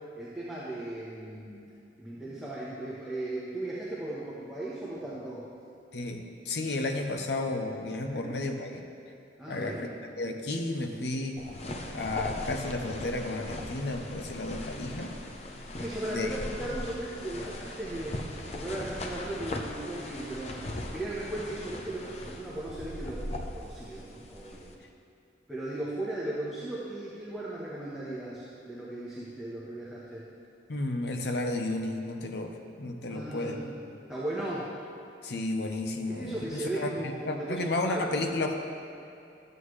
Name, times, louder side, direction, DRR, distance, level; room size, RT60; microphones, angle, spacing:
voice 1, 0.1-1.6 2.0-5.4 8.1-8.4 9.4-9.9 15.6-18.2 18.5-20.6 20.9-24.7 25.5-30.2 33.1-33.8 34.1-34.7 36.1-38.5, right 1 dB, 5° right, -9 dB, 1.1 m, -37 dB
voice 2, 5.9-8.8 9.5-11.4 11.9-15.1 16.1-16.3 30.7-33.6 35.2-36.9 37.3-38.5, left 2 dB, 70° left, 4 dB, 0.8 m, -32 dB
sound 1, 11.4-24.7, left 1 dB, 35° left, 0.6 m, -39 dB
12.5 x 7.8 x 3.2 m, 2.6 s
head